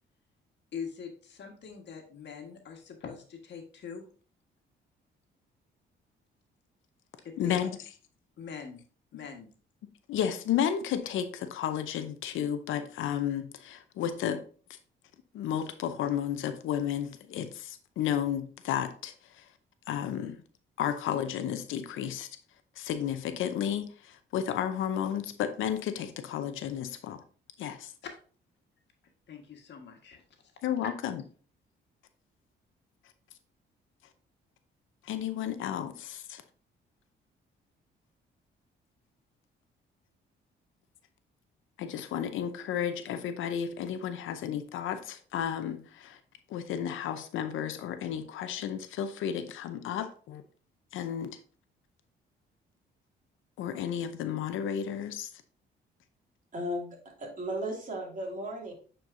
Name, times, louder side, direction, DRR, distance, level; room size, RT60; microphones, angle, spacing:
voice 1, 0.7-4.0 7.2-7.7 8.4-8.8 9.1-9.5 28.0-28.1 29.3-30.2 30.8-30.9, left 6 dB, 60° left, 1.5 m, -43 dB
voice 2, 7.4-7.7 10.1-14.4 15.3-19.4 19.9-20.4 20.8-22.3 22.8-27.2 27.6-27.9 30.6-31.2 35.0-36.4 41.8-46.2 46.5-50.4 50.9-51.4 53.6-55.3, left 9 dB, 80° left, 0.7 m, -32 dB
voice 3, 56.5-58.7, equal, 40° right, 2.5 m, -35 dB
8.2 x 4.5 x 2.6 m
cardioid pair, 90°, 20 cm